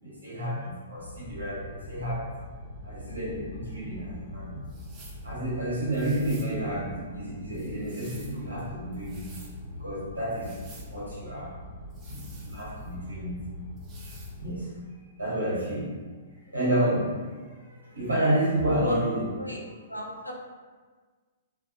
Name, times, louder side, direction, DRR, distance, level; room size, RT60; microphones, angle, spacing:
voice 1, 0.0-2.3 2.8-4.6 5.2-9.3 9.8-11.5 12.1-13.3 14.4-14.7 15.2-15.9 16.5-17.1 17.7-19.3, right 1 dB, 75° right, -7 dB, 1.0 m, -30 dB
sound 1, 1.0-14.5, left 1 dB, 50° left, 0.7 m, -43 dB
sound 2, 4.7-5.2 5.9-6.6 7.5-8.4 8.9-9.5 10.3-10.9 11.9-12.9 13.8-14.4, right 3 dB, 20° right, 0.4 m, -51 dB
voice 2, 19.4-20.3, left 1 dB, 85° left, 0 dB, 0.4 m, -36 dB
2.4 x 2.2 x 2.6 m, 1.4 s
figure-of-eight pair, 110°, 0 cm